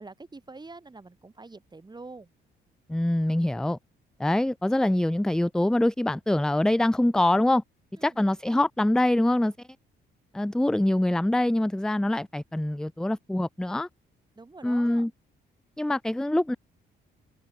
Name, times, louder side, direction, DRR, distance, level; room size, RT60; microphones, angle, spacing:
voice 1, 0.0-2.3 7.9-8.2 14.4-15.1, right 3 dB, 20° right, 4.3 m, -45 dB
voice 2, 2.9-3.8 4.2-7.6 8.0-9.5 10.3-13.9 14.6-15.1 15.8-16.6, left 1 dB, 5° left, 0.5 m, -24 dB
cardioid pair, 90°, 20 cm